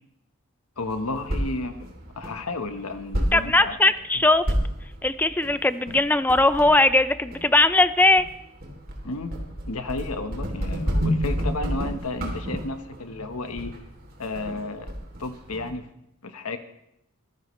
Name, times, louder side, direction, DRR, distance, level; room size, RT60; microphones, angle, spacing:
voice 1, 0.8-3.8 4.1-4.2 9.0-9.3 9.7-13.7 14.2-14.9 15.2-15.9 16.2-16.6, left 2 dB, 85° left, 8 dB, 1.3 m, -32 dB
sound 1, 0.8-15.7, equal, 45° right, 3.1 m, -31 dB
voice 2, 3.3-4.4 5.0-8.2, left 2 dB, 10° left, 13 dB, 0.4 m, -19 dB
23.5 x 15.0 x 3.2 m, 0.80 s
head